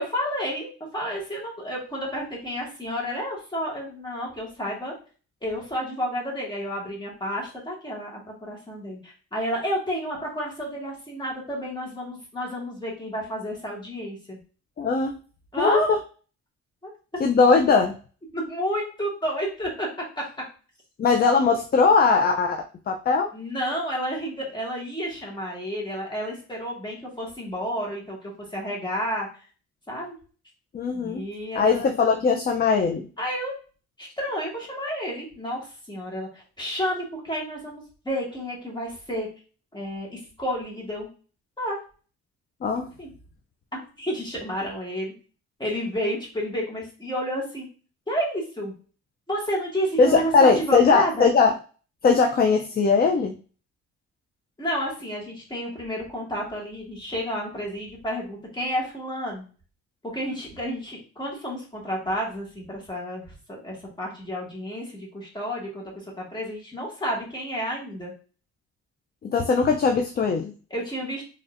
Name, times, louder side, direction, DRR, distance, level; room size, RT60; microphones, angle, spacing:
voice 1, 0.0-4.9 5.4-14.4 15.5-15.9 16.8-16.9 18.3-19.9 20.2-20.3 23.3-29.5 29.9-30.2 30.9-31.9 33.2-33.5 34.0-39.3 39.7-41.1 41.6-41.8 43.0-43.1 43.7-45.1 45.6-47.7 48.1-48.7 49.3-51.3 54.6-59.4 60.0-68.1 70.7-71.2, equal, 15° left, -3 dB, 1.8 m, -31 dB
voice 2, 14.8-15.2 15.6-16.0 17.2-17.9 21.0-23.3 30.7-31.2 31.6-33.1 42.6-42.9 50.0-51.5 52.0-53.3 69.3-70.5, left 4 dB, 30° left, 4 dB, 0.4 m, -20 dB
3.9 x 3.2 x 2.5 m, 0.38 s
cardioid pair, 90°, 30 cm